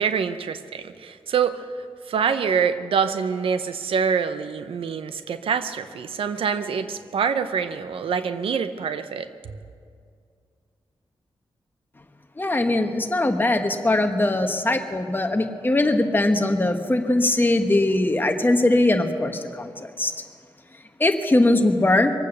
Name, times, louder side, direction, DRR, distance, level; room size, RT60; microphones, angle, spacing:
voice 1, 0.0-1.7 2.1-9.3, right 6 dB, 90° right, 11 dB, 0.7 m, -25 dB
voice 2, 12.4-20.1 21.0-22.1, left 2 dB, 20° left, 5 dB, 1.3 m, -21 dB
23.5 x 8.4 x 6.6 m, 2.2 s
cardioid pair, 80°, 9 cm